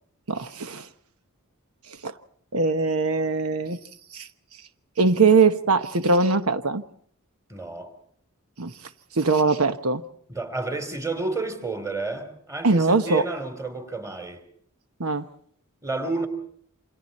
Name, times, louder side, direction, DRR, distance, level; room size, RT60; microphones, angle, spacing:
voice 1, 0.3-0.9 1.9-2.1 2.5-3.8 4.1-4.3 5.0-6.8 8.6-8.7 9.1-10.0 12.6-13.2 15.0-15.3, right 4 dB, 75° right, 1.1 m, -21 dB
voice 2, 7.5-7.9 10.3-14.4 15.8-16.3, right 3 dB, 15° right, 3.4 m, -30 dB
29.0 x 27.0 x 4.3 m
head